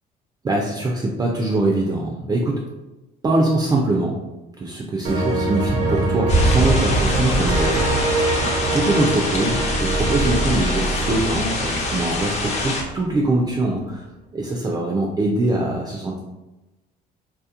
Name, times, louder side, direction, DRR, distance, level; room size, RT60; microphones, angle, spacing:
voice 1, 0.4-2.6 3.2-4.2 4.6-14.1 14.3-16.2, right 2 dB, 25° right, -1 dB, 0.3 m, -23 dB
sound 1, 5.0-12.7, right 2 dB, 80° right, 0.5 m, -24 dB
sound 2, 6.3-12.8, left 1 dB, 40° left, 0.5 m, -24 dB
2.7 x 2.1 x 2.4 m, 1.0 s
cardioid pair, 110°, 17 cm